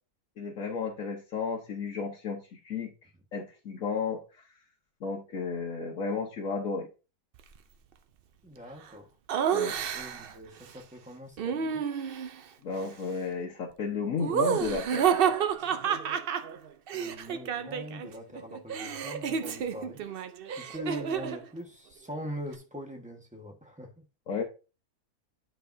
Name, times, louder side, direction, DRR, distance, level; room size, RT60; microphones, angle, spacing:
voice 1, 0.4-2.9 3.3-4.5 5.0-6.9 9.5-9.8 12.6-15.1 24.3-24.4, left 5 dB, 60° left, 1.4 m, -33 dB
voice 2, 8.4-9.1 9.9-11.8 16.9-20.0 20.5-24.0, equal, 5° right, 1.2 m, -42 dB
Laughter, 9.3-10.3 11.4-12.4 14.2-18.1 18.3-21.4, right 8 dB, 65° right, 0.5 m, -30 dB
9.9 x 5.6 x 2.7 m
omnidirectional pair, 1.7 m